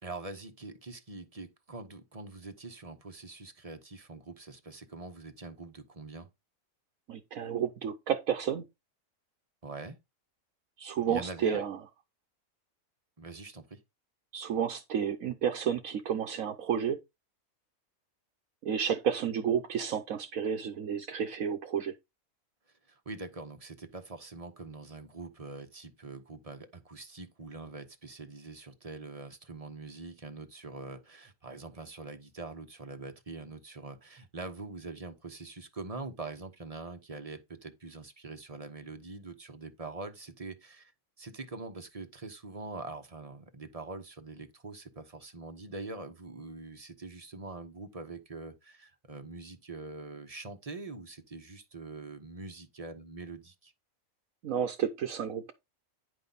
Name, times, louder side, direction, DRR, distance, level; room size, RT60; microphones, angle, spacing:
voice 1, 0.0-6.3 9.6-10.0 11.1-11.6 13.2-13.8 22.9-40.9 41.2-53.7, right 3 dB, 30° right, 1.0 m, -44 dB
voice 2, 7.1-8.7 10.8-11.8 14.3-17.0 18.6-21.9 54.4-55.5, right 8 dB, 75° right, 1.3 m, -31 dB
10.0 x 5.4 x 4.0 m
omnidirectional pair, 1.5 m